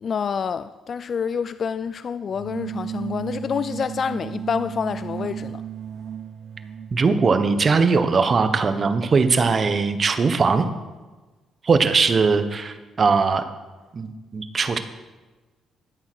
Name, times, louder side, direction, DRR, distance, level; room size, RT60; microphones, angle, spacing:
voice 1, 0.0-5.6, left 6 dB, 50° left, 0.3 m, -27 dB
sound 1, 2.3-7.1, right 9 dB, 55° right, 0.6 m, -34 dB
voice 2, 6.9-10.7 11.6-13.4 13.9-14.8, right 4 dB, 40° right, 1.1 m, -20 dB
11.5 x 8.2 x 6.3 m
cardioid pair, 90°, 0 cm